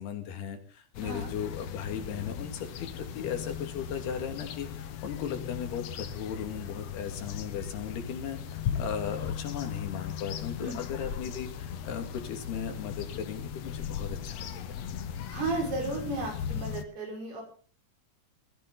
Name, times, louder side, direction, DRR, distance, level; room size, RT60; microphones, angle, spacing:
voice 1, 0.0-14.6, left 7 dB, 85° left, 5 dB, 4.3 m, -37 dB
sound 1, 0.9-16.8, left 8 dB, 70° left, 1.6 m, -38 dB
voice 2, 1.0-1.3 10.6-10.8 15.3-17.4, right 3 dB, 80° right, 1 dB, 7.4 m, -34 dB
22.5 x 14.5 x 4.0 m, 0.40 s
omnidirectional pair, 4.5 m